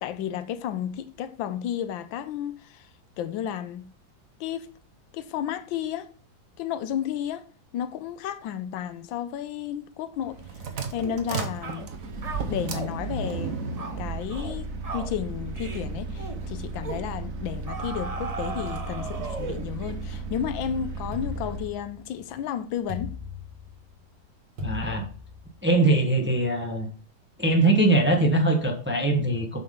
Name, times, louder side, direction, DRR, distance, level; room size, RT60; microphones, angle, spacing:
voice 1, 0.0-2.9 3.2-3.8 4.4-4.7 5.1-6.1 6.6-7.5 7.7-10.4 10.9-11.9 12.5-13.7 14.0-23.1, left 9 dB, 85° left, 1.4 m, -32 dB
sound 1, 10.2-21.7, right 4 dB, 50° right, 1.2 m, -34 dB
sound 2, 11.0-11.2 11.6-11.9 12.2-12.9 13.3-13.5 13.8-14.0 14.3-14.6 14.8-15.1 15.6-15.9 16.2-16.4 16.8-17.1 17.7-19.7, right 4 dB, 65° right, 0.3 m, -36 dB
sound 3, 21.1-22.2 22.9-23.9 24.6-25.7, left 5 dB, 85° right, 3.1 m, -38 dB
voice 2, 24.6-25.1 25.6-26.9 27.4-29.6, right 2 dB, 10° right, 0.8 m, -22 dB
7.7 x 5.9 x 3.7 m
omnidirectional pair, 2.1 m